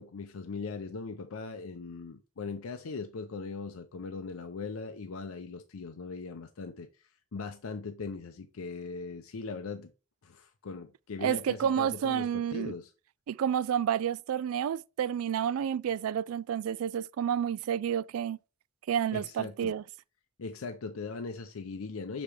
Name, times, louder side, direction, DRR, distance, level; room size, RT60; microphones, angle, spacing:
voice 1, 0.0-6.9 7.3-9.9 10.2-12.9 19.1-19.7 20.4-22.2, left 4 dB, 90° left, 0.6 m, -39 dB
voice 2, 11.2-12.7 13.3-18.4 18.9-19.8, right 9 dB, 85° right, 0.3 m, -30 dB
5.8 x 5.0 x 3.4 m
head